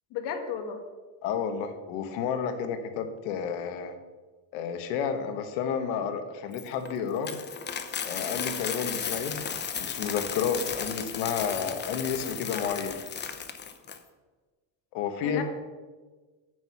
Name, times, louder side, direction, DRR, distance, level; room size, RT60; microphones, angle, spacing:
voice 1, 0.1-0.8 15.2-15.4, left 7 dB, 70° left, 6 dB, 1.7 m, -33 dB
voice 2, 1.2-3.9 4.5-7.3 8.0-9.4 9.8-13.0 14.9-15.4, left 7 dB, 85° left, 8 dB, 1.5 m, -31 dB
Coin (dropping), 6.5-14.0, left 7 dB, 25° left, 0.8 m, -35 dB
9.3 x 8.3 x 5.8 m, 1.3 s
cardioid pair, 140°, 43 cm